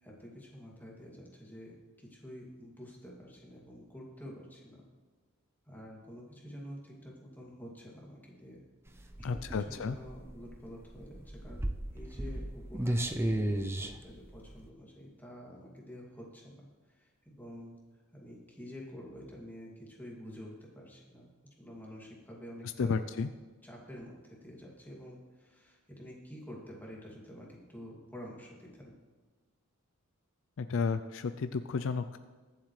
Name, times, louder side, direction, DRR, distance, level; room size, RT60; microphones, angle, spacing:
voice 1, 0.0-4.8 5.7-8.6 9.2-9.4 9.7-11.7 11.9-17.8 18.1-23.0 23.6-28.9, equal, 10° left, -3 dB, 2.3 m, -49 dB
sound 1, 8.9-14.7, right 1 dB, 10° right, 0.5 m, -34 dB
voice 2, 9.2-10.0 22.8-23.3 30.6-32.2, left 5 dB, 65° left, 11 dB, 0.4 m, -32 dB
22.0 x 7.5 x 3.2 m, 1.3 s
head